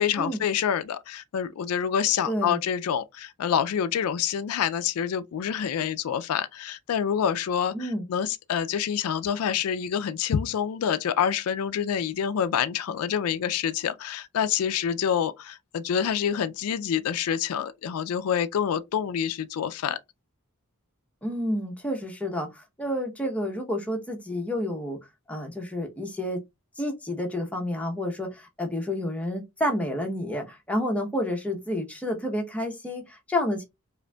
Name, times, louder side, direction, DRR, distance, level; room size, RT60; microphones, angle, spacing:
voice 1, 0.0-20.0, left 8 dB, 85° left, 0.4 m, -27 dB
voice 2, 2.2-2.6 7.7-8.0 21.2-25.0 25.3-26.4 26.8-33.6, left 1 dB, 5° left, 0.8 m, -30 dB
4.9 x 2.5 x 2.2 m
head